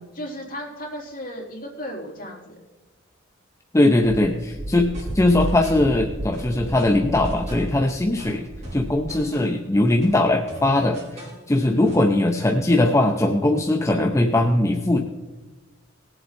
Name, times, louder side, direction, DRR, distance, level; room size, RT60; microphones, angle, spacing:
voice 1, 0.1-2.6 11.6-11.9, equal, 45° left, -3 dB, 3.6 m, -35 dB
voice 2, 3.7-15.0, left 1 dB, 15° left, 3 dB, 0.6 m, -20 dB
Wind, 4.5-9.3, right 1 dB, 55° right, 1.1 m, -33 dB
sound 1, 4.9-5.9 6.3-7.8 8.2-9.7 10.0-11.4 11.8-12.1, right 1 dB, 35° right, 5.0 m, -41 dB
18.5 x 7.8 x 4.1 m, 1.2 s
head